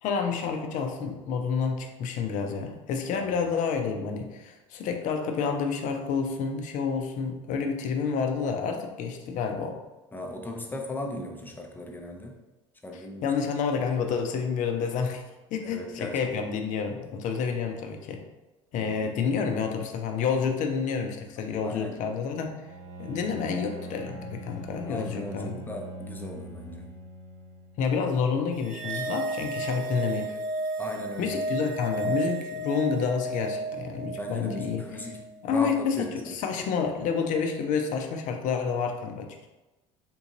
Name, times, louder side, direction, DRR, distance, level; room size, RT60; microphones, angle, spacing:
voice 1, 0.0-9.8 13.2-15.2 15.5-18.2 18.7-22.6 23.0-25.6 27.8-30.4 31.2-34.8 35.4-39.5, left 6 dB, 50° left, 4 dB, 0.6 m, -29 dB
voice 2, 3.1-3.5 10.1-12.4 12.8-13.3 15.6-16.5 18.7-19.1 21.6-22.0 24.9-27.0 30.8-31.4 34.2-35.3 35.5-36.3, left 2 dB, 10° left, 1 dB, 0.7 m, -37 dB
Bowed string instrument, 22.6-27.9, right 2 dB, 90° right, 1.3 m, -42 dB
sound 1, 28.6-35.2, right 2 dB, 55° right, 0.5 m, -33 dB
3.7 x 2.5 x 2.9 m, 1.1 s
hypercardioid pair, 75°, 16 cm